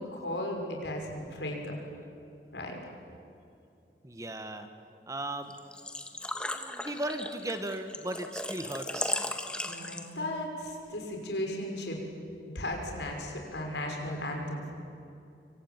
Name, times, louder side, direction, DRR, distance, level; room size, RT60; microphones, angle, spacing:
voice 1, 0.0-1.8 2.5-2.8 9.6-12.0 12.4-14.7, left 1 dB, 80° left, 1 dB, 6.1 m, -36 dB
voice 2, 4.0-4.7 5.1-5.5 6.4-9.3, right 1 dB, 20° right, 7 dB, 1.5 m, -37 dB
Engine / Trickle dribble / Fill (with liquid), 5.5-10.3, left 1 dB, 5° left, 1.5 m, -36 dB
27.0 x 24.5 x 9.1 m, 2.6 s
head